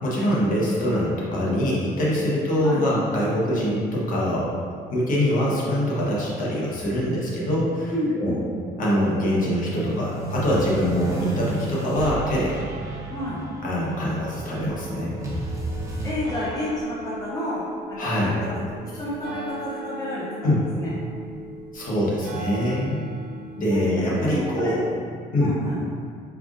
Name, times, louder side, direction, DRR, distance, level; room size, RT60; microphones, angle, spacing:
voice 1, 0.0-4.6 4.9-8.4 8.8-12.6 13.6-15.2 18.0-18.4 20.4-20.7 21.7-23.1 23.6-24.8 25.3-25.5, equal, 55° left, -6 dB, 1.2 m, -24 dB
voice 2, 7.9-8.4 13.1-13.4 16.0-18.5 18.8-20.9 23.7-24.7 25.4-25.8, left 1 dB, 20° left, -7 dB, 0.7 m, -30 dB
sound 1, 9.0-16.1, right 2 dB, 20° right, 0.8 m, -33 dB
sound 2, 14.4-25.0, right 2 dB, 65° right, 0.7 m, -39 dB
4.7 x 3.4 x 2.5 m, 2.1 s
cardioid pair, 110°, 17 cm